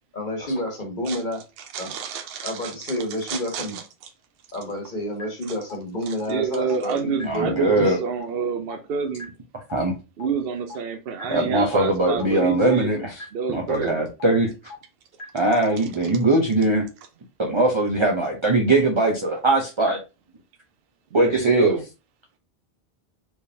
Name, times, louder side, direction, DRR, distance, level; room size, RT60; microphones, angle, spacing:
voice 1, 0.1-1.4 1.8-1.9 2.4-3.8 4.5-8.0, left 1 dB, 45° left, 1 dB, 1.5 m, -29 dB
voice 2, 1.7-3.0 3.3-3.8 6.1-9.3 10.2-12.9 13.3-14.0 21.1-21.8, right 6 dB, 65° right, 5 dB, 0.8 m, -29 dB
sound 1, 5.2-5.3 5.7-5.8 6.2-6.3 6.7-6.8 7.2-7.3 7.7-7.8 8.2-8.3 8.7-8.8 9.2-9.3 9.7-9.8 10.2-10.3 10.7-10.8 11.2-11.3 11.7-11.8 12.2-12.3 12.7-12.8 13.2-13.3 13.7-13.8 14.2-14.3 14.7-14.8 15.2-15.3 15.7-15.8, left 3 dB, 85° left, 1.5 m, -37 dB
voice 3, 7.3-8.0 9.7-10.0 11.3-13.2 13.5-14.5 15.3-16.9 17.4-20.0 21.1-21.7, right 2 dB, 30° right, 1 dB, 0.7 m, -20 dB
4.5 x 3.4 x 2.7 m, 0.29 s
omnidirectional pair, 1.1 m